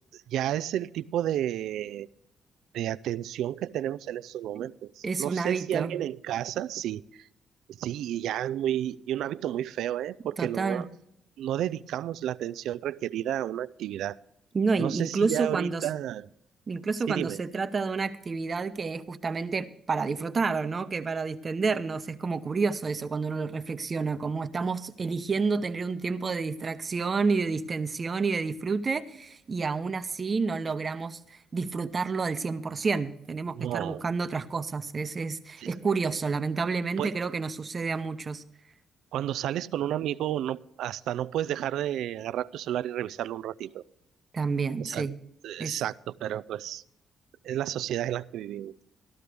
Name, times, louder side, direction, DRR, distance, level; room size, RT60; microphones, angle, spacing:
voice 1, 0.1-2.1 2.7-7.3 7.8-10.9 11.4-14.2 14.8-16.3 17.1-17.4 33.6-34.0 35.6-35.7 37.0-37.2 39.1-43.8 44.8-45.1 45.4-46.8 47.4-48.8, right 12 dB, 80° right, 0.4 m, -31 dB
voice 2, 5.0-6.0 10.4-10.8 14.5-15.9 16.7-38.4 44.3-45.2 45.6-45.8, right 4 dB, 35° right, 0.8 m, -29 dB
14.5 x 12.5 x 3.4 m
cardioid pair, 90°, 0 cm